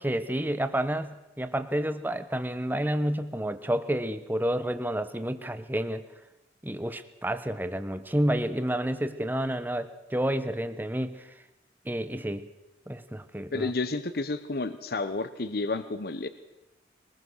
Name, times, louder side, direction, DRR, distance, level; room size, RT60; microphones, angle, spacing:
voice 1, 0.0-6.0 6.6-11.2 11.8-12.5 12.9-13.7, right 1 dB, 10° right, 10 dB, 1.0 m, -30 dB
voice 2, 13.5-16.3, left 3 dB, 55° left, 11 dB, 0.9 m, -31 dB
22.0 x 20.5 x 6.3 m, 0.95 s
head